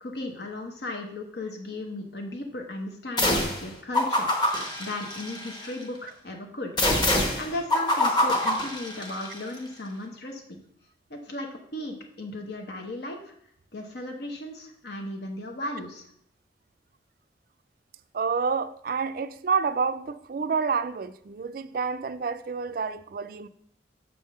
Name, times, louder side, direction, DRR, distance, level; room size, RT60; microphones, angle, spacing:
voice 1, 0.0-10.6 11.1-13.3 13.7-16.1, left 2 dB, 65° left, 0.9 m, -36 dB
sound 1, 3.2-3.6 3.9-5.7 6.8-9.4, left 1 dB, 25° left, 1.1 m, -25 dB
voice 2, 18.1-23.5, right 5 dB, 50° right, 0.4 m, -28 dB
7.1 x 3.6 x 6.4 m
head